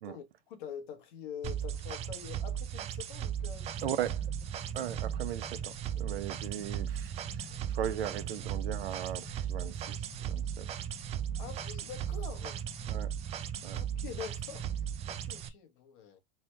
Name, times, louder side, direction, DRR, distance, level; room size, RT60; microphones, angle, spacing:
voice 1, 0.0-3.9 11.4-12.6 13.7-16.2, left 8 dB, 55° left, 1.2 m, -45 dB
sound 1, 1.4-15.5, right 9 dB, 20° right, 0.3 m, -37 dB
sound 2, 3.4-15.4, left 3 dB, 10° left, 0.7 m, -51 dB
voice 2, 3.8-4.2 4.7-10.7 12.9-13.1 13.6-13.8, right 10 dB, 80° right, 0.7 m, -38 dB
3.3 x 2.7 x 3.2 m
hypercardioid pair, 110°, 30 cm